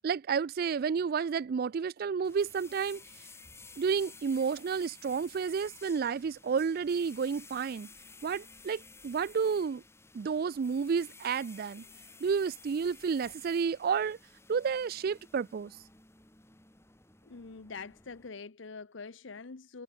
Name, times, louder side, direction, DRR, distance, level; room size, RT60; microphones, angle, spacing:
voice 1, 0.0-3.0 3.8-7.9 8.2-9.8 10.1-11.8 12.2-14.2 14.5-15.8, right 6 dB, 50° right, 0.3 m, -31 dB
sound 1, 2.2-18.3, left 4 dB, 15° left, 3.7 m, -54 dB
voice 2, 17.2-19.8, left 4 dB, 65° left, 0.8 m, -44 dB
head